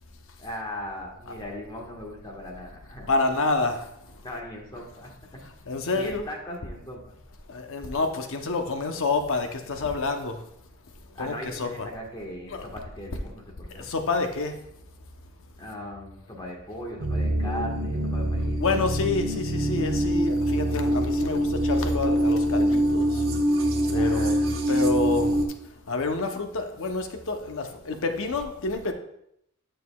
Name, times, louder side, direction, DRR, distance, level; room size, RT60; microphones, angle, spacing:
voice 1, 0.4-3.1 4.2-5.1 5.9-7.0 11.1-13.9 15.6-18.8 23.8-24.5, equal, 20° left, -2 dB, 1.4 m, -38 dB
voice 2, 3.1-3.9 5.7-6.2 7.5-10.4 11.2-11.7 12.5-12.7 13.7-14.5 18.6-23.2 23.9-24.4 24.7-25.4 25.9-28.9, left 3 dB, 60° left, 6 dB, 0.7 m, -28 dB
sound 1, 17.0-25.5, right 1 dB, 65° right, 0.9 m, -24 dB
9.5 x 6.4 x 2.3 m, 0.75 s
head